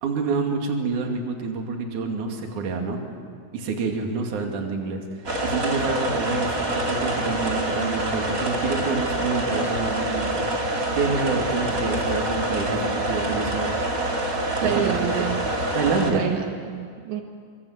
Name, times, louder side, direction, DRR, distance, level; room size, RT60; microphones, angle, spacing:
voice 1, 0.0-3.0 3.5-5.0 5.4-10.4 10.9-13.7 14.6-15.3 15.7-16.3, right 4 dB, 50° right, 2 dB, 3.5 m, -27 dB
sound 1, 5.2-16.1, right 1 dB, 25° right, 1.9 m, -26 dB
voice 2, 14.6-15.5 16.1-17.2, right 10 dB, 75° right, 4 dB, 3.5 m, -28 dB
25.0 x 24.5 x 8.1 m, 2.2 s
omnidirectional pair, 5.1 m